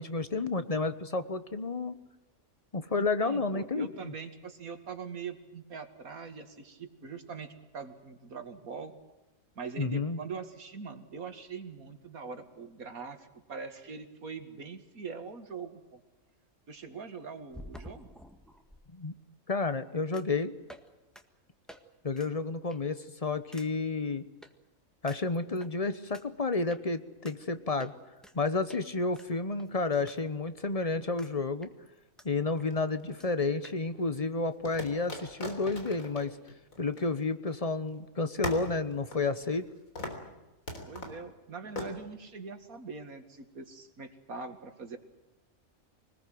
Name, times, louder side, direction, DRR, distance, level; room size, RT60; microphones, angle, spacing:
voice 1, 0.0-2.0 2.7-4.1 9.8-10.2 18.9-19.1 19.5-20.5 22.0-24.2 25.0-27.9 28.3-31.7 32.2-36.4 36.8-39.6, left 3 dB, 30° left, 12 dB, 1.1 m, -31 dB
voice 2, 3.0-8.9 9.6-16.0 16.7-18.1 40.9-45.0, right 5 dB, 85° right, 7 dB, 2.5 m, -42 dB
sound 1, 17.5-18.8 20.1-20.4 20.7-20.9 21.1-21.2 21.7-21.8 22.1-22.3 22.7-23.0 23.5-23.7 24.4-24.5 25.1-25.7 26.1-26.2 26.7-26.8 27.2-27.4 27.8-28.4 28.7-28.8 29.1-30.2 30.5-30.6 31.2-31.3 31.6-32.3 32.6-32.7 32.9-33.0 33.2-33.3 33.6-33.8, equal, ahead, 1.6 m, -50 dB
sound 2, 32.6-33.5 34.7-37.6 37.9-38.0 38.4-39.7 40.0-40.3 40.7-41.2 41.8-41.9, left 1 dB, 70° left, 4.1 m, -40 dB
25.0 x 20.0 x 7.8 m, 1.1 s
omnidirectional pair, 1.5 m